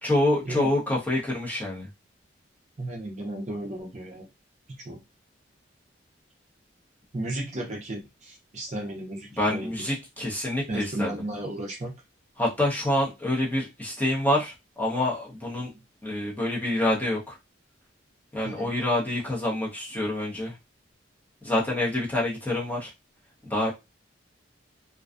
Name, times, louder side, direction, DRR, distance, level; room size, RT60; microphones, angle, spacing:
voice 1, 0.0-1.9 9.4-11.1 12.4-15.7 16.0-17.4 18.3-20.5 21.4-22.9 23.4-23.7, left 1 dB, 10° left, -5 dB, 0.7 m, -27 dB
voice 2, 2.8-4.3 4.9-5.0 7.1-9.7 10.7-11.9 15.7-15.8 18.4-18.7, right 1 dB, 35° right, 0 dB, 0.5 m, -34 dB
2.5 x 2.2 x 2.4 m, 0.23 s
head